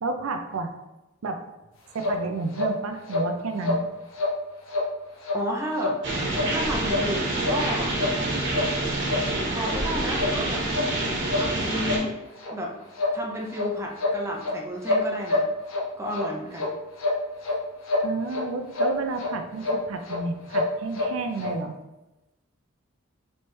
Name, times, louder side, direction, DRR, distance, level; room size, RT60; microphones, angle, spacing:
voice 1, 0.0-0.7 1.2-1.4 1.9-3.9 18.0-21.7, right 3 dB, 80° right, 6 dB, 0.5 m, -30 dB
sound 1, 2.0-2.2 2.5-2.7 3.1-3.3 3.6-3.8 4.2-4.4 4.7-4.9 5.2-5.4 5.8-6.0 6.3-6.5 6.9-7.1 7.4-7.6 8.0-8.1 8.5-8.7 9.1-9.2 9.6-9.7 10.2-10.3 10.7-10.9 11.3-11.5 11.8-12.0 12.4-12.5 13.0-13.2 13.5-13.7 14.0-14.5 14.8-15.8 16.1-16.3 16.6-16.7 17.0-17.6 17.9-18.4 18.7-18.9 19.2-19.3 19.6-19.8 20.1-20.2 20.5-21.1 21.4-21.5, left 2 dB, 75° left, 0.8 m, -26 dB
voice 2, 5.3-6.0 6.5-8.0 9.0-10.7 11.4-12.2 12.5-12.7 13.1-15.5 16.0-16.7, equal, 15° right, -1 dB, 0.5 m, -32 dB
sound 2, 6.0-12.0, right 2 dB, 60° right, 1.0 m, -27 dB
4.3 x 3.2 x 3.2 m, 1.0 s
head